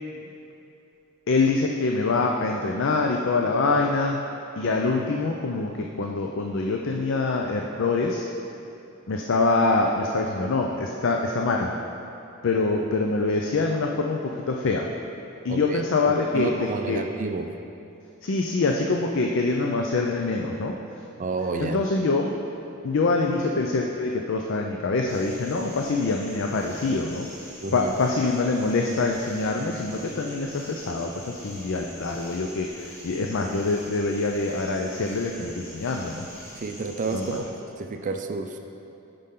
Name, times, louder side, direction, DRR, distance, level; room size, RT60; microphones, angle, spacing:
voice 1, 1.3-4.2 4.6-8.3 9.1-11.7 12.4-14.9 15.4-17.0 18.2-21.0 21.6-22.3 22.8-27.3 27.7-36.3 37.1-37.4, left 3 dB, 60° left, 1 dB, 0.5 m, -25 dB
voice 2, 15.5-17.5 21.2-21.8 27.6-27.9 36.6-38.6, right 3 dB, 35° right, 6 dB, 0.4 m, -31 dB
sound 1, 25.1-37.4, equal, 15° left, 1.6 m, -44 dB
9.7 x 5.2 x 3.7 m, 2.8 s
head